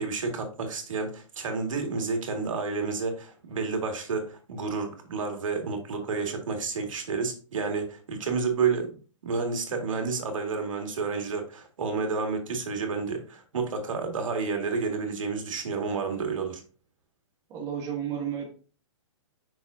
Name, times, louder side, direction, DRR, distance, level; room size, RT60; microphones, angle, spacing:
voice 1, 0.0-9.0 9.2-16.6, right 4 dB, 85° right, 4 dB, 2.2 m, -30 dB
voice 2, 17.5-18.5, right 9 dB, 15° right, -1 dB, 1.2 m, -32 dB
7.2 x 6.0 x 2.7 m, 0.38 s
hypercardioid pair, 175°, 16 cm